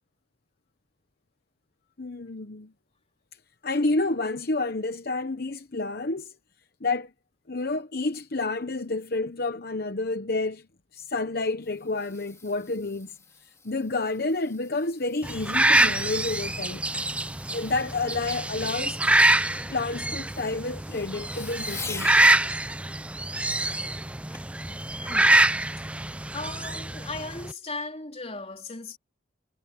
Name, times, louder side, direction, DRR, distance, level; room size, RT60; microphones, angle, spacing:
voice 1, 2.0-2.7 3.6-6.4 6.8-7.1 7.5-10.7 10.9-16.9 17.5-19.0 19.7-22.3, left 3 dB, 55° left, 1.0 m, -29 dB
Fireworks, 11.3-22.3 24.3-24.6 25.2-25.3, left 4 dB, 15° left, 2.3 m, -46 dB
sound 1, 15.2-27.5, right 1 dB, 5° right, 0.5 m, -25 dB
voice 2, 25.0-25.4 26.3-29.0, left 3 dB, 35° left, 3.6 m, -37 dB
head